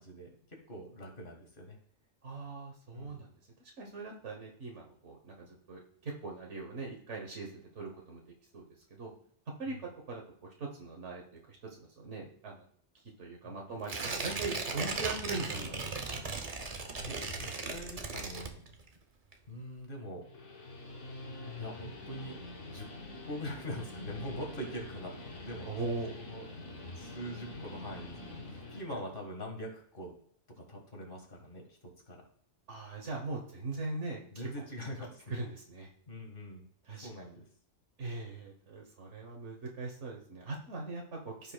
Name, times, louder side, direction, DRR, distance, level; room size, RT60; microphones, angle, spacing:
voice 1, 0.0-1.8 2.9-3.3 9.6-9.8 13.4-13.6 16.5-18.8 19.5-20.3 21.6-22.4 22.6-22.9 23.3-25.1 25.4-26.5 26.8-30.1 30.6-32.2 34.3-35.5 36.1-36.7 37.0-37.4, equal, 45° left, 2 dB, 2.0 m, -43 dB
voice 2, 2.2-3.3 3.8-8.2 8.5-8.6 8.9-9.1 9.6-9.8 10.1-10.2 10.6-12.6 13.2-16.2 25.6-26.1 32.7-34.2 35.3-35.9 36.9-37.1 38.0-41.5, right 3 dB, 80° right, 0 dB, 1.6 m, -40 dB
Tearing, 13.8-19.0 19.3-19.4, right 3 dB, 35° right, 0.8 m, -37 dB
Guitar, 20.1-28.9, left 2 dB, 90° left, 1.6 m, -46 dB
15.0 x 5.5 x 2.3 m, 0.63 s
omnidirectional pair, 1.2 m